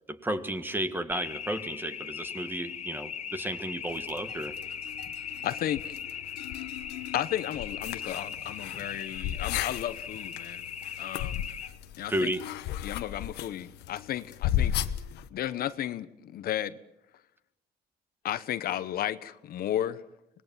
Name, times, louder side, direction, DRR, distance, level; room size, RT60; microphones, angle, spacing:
voice 1, 0.1-4.5 12.1-12.4, right 1 dB, 10° right, 9 dB, 1.7 m, -32 dB
sound 1, 1.1-11.7, left 8 dB, 40° left, 1.4 m, -39 dB
sound 2, 3.9-15.3, left 11 dB, 85° left, 1.1 m, -36 dB
voice 2, 5.4-5.9 7.1-10.6 11.0-11.5 12.0-12.3 12.8-14.9 15.3-16.8 18.2-20.0, left 11 dB, 60° left, 13 dB, 1.0 m, -33 dB
25.5 x 19.5 x 7.4 m, 0.89 s
cardioid pair, 110°, 17 cm